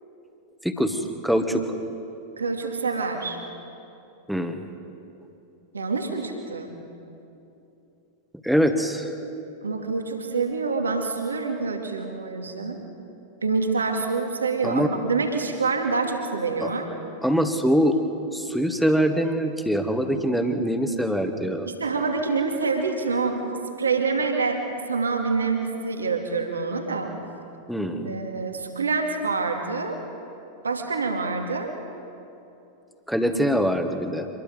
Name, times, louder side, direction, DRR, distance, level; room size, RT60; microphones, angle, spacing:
voice 1, 0.6-1.6 4.3-4.6 8.4-9.1 14.6-14.9 16.6-16.7 17.2-18.0 18.3-21.7 27.7-28.2 33.1-34.3, equal, ahead, 7 dB, 1.6 m, -23 dB
voice 2, 2.4-3.4 5.7-6.8 9.6-12.8 13.4-16.9 21.7-23.4 23.8-27.2 28.0-30.0 30.6-31.7, right 4 dB, 75° right, 3 dB, 2.3 m, -26 dB
26.0 x 20.5 x 5.3 m, 2.8 s
figure-of-eight pair, 90°, 0 cm